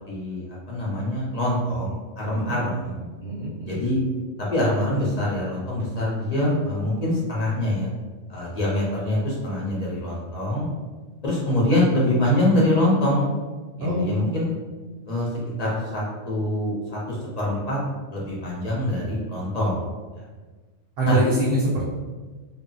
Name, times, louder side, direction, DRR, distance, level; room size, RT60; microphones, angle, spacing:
voice 1, 0.1-2.9 3.6-4.0 4.4-7.9 8.3-10.7 11.2-13.3 13.8-14.5 15.1-15.3 15.6-17.8 18.1-19.8 21.0-21.2, left 1 dB, 45° left, -5 dB, 0.6 m, -24 dB
voice 2, 2.2-2.6 3.2-3.8 13.8-14.6 21.0-21.8, right 1 dB, 60° right, -5 dB, 0.7 m, -25 dB
2.1 x 2.0 x 3.7 m, 1.3 s
omnidirectional pair, 1.2 m